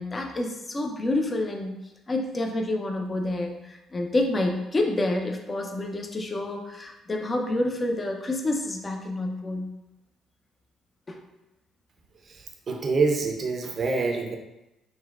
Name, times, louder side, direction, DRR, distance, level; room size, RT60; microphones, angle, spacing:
voice 1, 0.0-1.8 2.1-9.7 11.1-11.2, left 2 dB, 30° left, 2 dB, 0.5 m, -28 dB
voice 2, 12.3-14.4, right 4 dB, 45° right, 2 dB, 0.5 m, -26 dB
3.8 x 2.2 x 2.3 m, 0.93 s
hypercardioid pair, 50°, 0 cm